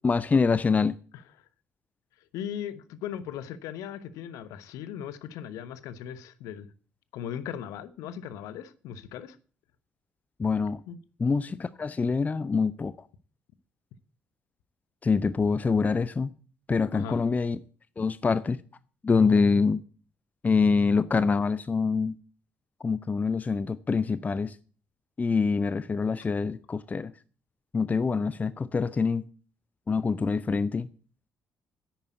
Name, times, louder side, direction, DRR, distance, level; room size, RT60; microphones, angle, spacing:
voice 1, 0.0-0.9 10.4-10.8 11.2-12.9 15.0-16.3 16.7-17.6 18.0-18.6 19.0-19.8 20.4-22.2 22.8-24.5 25.2-27.1 27.7-29.3 29.9-30.9, left 4 dB, 25° left, 0.7 m, -25 dB
voice 2, 2.3-6.7 7.1-9.4 10.9-11.0 16.9-17.2, left 9 dB, 60° left, 1.0 m, -38 dB
10.5 x 8.9 x 8.1 m
figure-of-eight pair, 45°, 6 cm